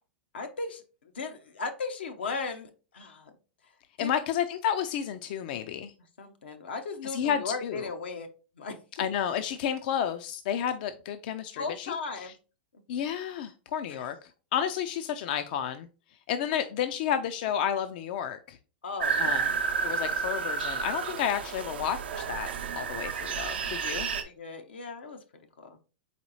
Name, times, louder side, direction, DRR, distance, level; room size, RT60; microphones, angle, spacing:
voice 1, 0.3-3.3 4.0-4.2 6.2-8.3 8.6-8.8 11.5-12.3 13.9-14.0 18.8-19.5 22.6-23.0 23.9-25.2 25.6-25.8, left 4 dB, 90° left, 6 dB, 0.7 m, -37 dB
voice 2, 4.0-5.9 7.0-7.9 9.0-12.3 12.9-14.2 14.5-15.9 16.3-18.6 19.2-19.4 19.8-22.5 22.8-24.1, left 9 dB, 60° left, 9 dB, 0.4 m, -31 dB
sound 1, 19.0-24.2, right 5 dB, 85° right, 0.6 m, -31 dB
4.1 x 3.9 x 3.0 m, 0.35 s
hypercardioid pair, 115°, 6 cm